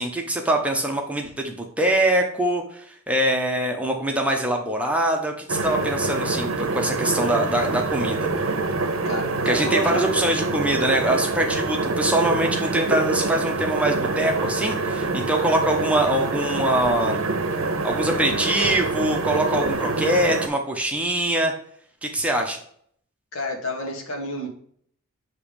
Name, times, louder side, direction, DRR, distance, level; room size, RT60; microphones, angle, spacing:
voice 1, 0.0-8.3 9.5-17.2 17.8-21.5 22.0-22.6, right 1 dB, 5° right, 2 dB, 0.6 m, -23 dB
sound 1, 5.5-20.5, right 3 dB, 65° right, 0.7 m, -26 dB
voice 2, 9.0-10.0 23.3-24.5, equal, 70° left, 2 dB, 1.3 m, -29 dB
6.7 x 2.9 x 5.1 m, 0.63 s
head